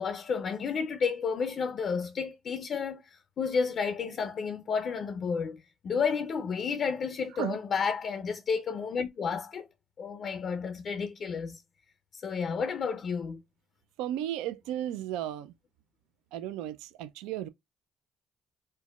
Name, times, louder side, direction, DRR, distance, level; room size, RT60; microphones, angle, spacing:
voice 1, 0.0-9.7 10.0-11.6 12.1-13.4, left 6 dB, 55° left, 0.5 m, -31 dB
voice 2, 14.0-15.5 16.3-17.5, right 12 dB, 85° right, 0.3 m, -34 dB
4.5 x 2.1 x 2.2 m
supercardioid pair, 70°, 0 cm